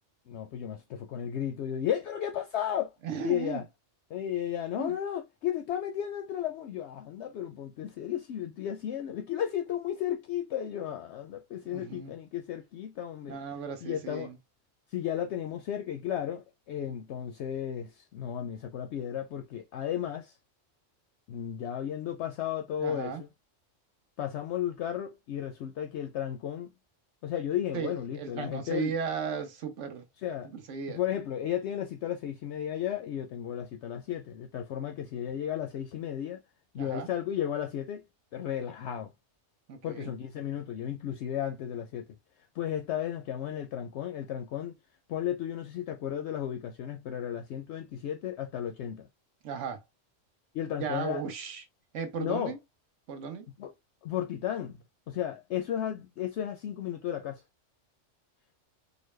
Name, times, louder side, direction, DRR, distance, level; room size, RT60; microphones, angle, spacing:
voice 1, 0.3-2.9 3.2-3.6 4.1-13.4 13.8-14.3 14.9-20.4 21.3-23.3 24.2-26.7 27.2-28.9 30.2-30.5 30.9-36.4 36.7-38.0 38.3-39.1 39.8-42.1 42.6-44.8 45.1-49.1 50.5-51.2 52.2-52.5 53.6-53.7 54.0-54.8 55.1-57.4, left 10 dB, 70° left, 0.8 m, -34 dB
voice 2, 3.0-3.6 4.8-5.0 11.7-12.1 13.3-14.4 22.8-23.2 27.7-30.0 30.5-31.0 36.8-37.1 39.7-40.1 49.4-49.8 50.8-51.6 51.9-52.6 53.1-53.5, right 6 dB, 70° right, 1.1 m, -36 dB
4.0 x 2.1 x 3.1 m
omnidirectional pair, 1.3 m